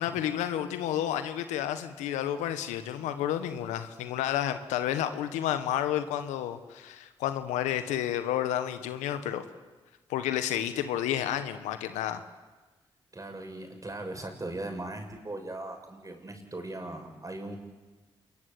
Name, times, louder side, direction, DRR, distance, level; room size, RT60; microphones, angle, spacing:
voice 1, 0.0-9.4 10.1-12.2, left 11 dB, 90° left, 10 dB, 1.4 m, -31 dB
voice 2, 13.1-17.6, right 2 dB, 30° right, 5 dB, 6.9 m, -39 dB
27.5 x 21.5 x 8.6 m, 1.2 s
supercardioid pair, 40°, 12 cm